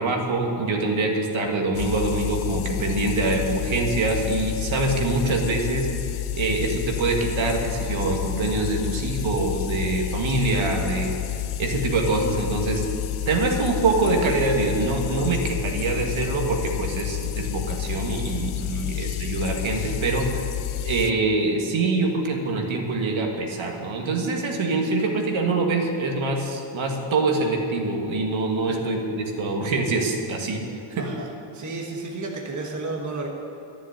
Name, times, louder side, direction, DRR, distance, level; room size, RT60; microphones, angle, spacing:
voice 1, 0.0-12.8 13.3-20.5 20.8-30.6 30.9-31.1, right 3 dB, 70° right, 1 dB, 1.9 m, -25 dB
sound 1, 1.7-21.1, left 11 dB, 80° left, 0.7 m, -30 dB
voice 2, 18.6-18.9 28.6-28.8 31.0-31.3 31.5-33.3, right 3 dB, 35° right, 0 dB, 1.3 m, -32 dB
13.0 x 7.4 x 9.8 m, 2.9 s
wide cardioid pair, 165°, 49 cm